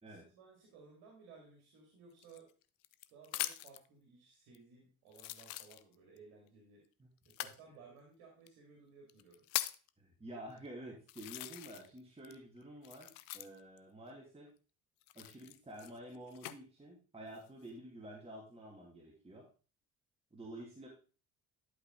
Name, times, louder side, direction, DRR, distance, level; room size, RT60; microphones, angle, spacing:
voice 1, 0.1-2.5 3.1-6.8 7.3-9.5, right 5 dB, 60° right, 0 dB, 2.3 m, -59 dB
sound 1, 2.2-3.9 4.5-4.6 5.1-6.2 7.3-7.6 8.5-8.6 9.1-9.9 10.6-10.7 11.1-12.0 12.2-13.8 15.0-16.6 17.2-17.7, left 16 dB, 55° left, 0.7 m, -42 dB
voice 2, 10.0-14.5 15.1-19.5 20.3-20.9, right 1 dB, 15° right, -2 dB, 2.4 m, -50 dB
11.5 x 5.2 x 3.7 m, 0.35 s
figure-of-eight pair, 55°, 43 cm